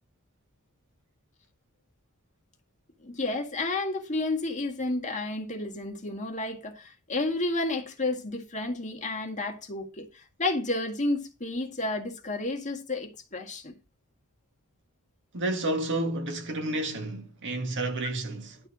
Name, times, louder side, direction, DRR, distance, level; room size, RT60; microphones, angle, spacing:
voice 1, 3.0-13.7, left 2 dB, 35° left, 2.0 m, -31 dB
voice 2, 15.3-18.6, right 2 dB, 55° right, 1.9 m, -30 dB
11.5 x 4.5 x 6.3 m
head